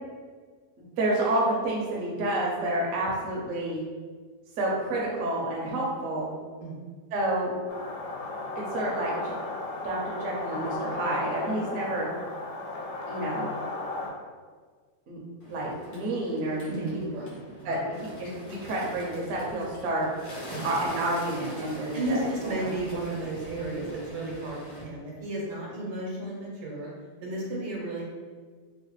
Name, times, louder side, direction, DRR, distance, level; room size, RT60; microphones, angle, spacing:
voice 1, 0.8-3.8 4.6-6.3 7.1-7.5 8.5-9.3 9.8-12.1 13.1-13.5 15.1-15.2 15.5-17.0 17.6-17.8 18.2-20.1 20.6-22.2 22.4-22.7, right 1 dB, 65° right, -4 dB, 1.0 m, -29 dB
sound 1, 7.7-14.1, left 2 dB, 80° left, 1.2 m, -35 dB
Bird, 15.4-24.8, equal, 50° left, 0.9 m, -44 dB
voice 2, 16.7-17.9 20.5-20.7 21.9-26.9 27.2-28.0, right 2 dB, 80° right, -4 dB, 1.3 m, -33 dB
3.1 x 2.1 x 3.0 m, 1.5 s
omnidirectional pair, 1.8 m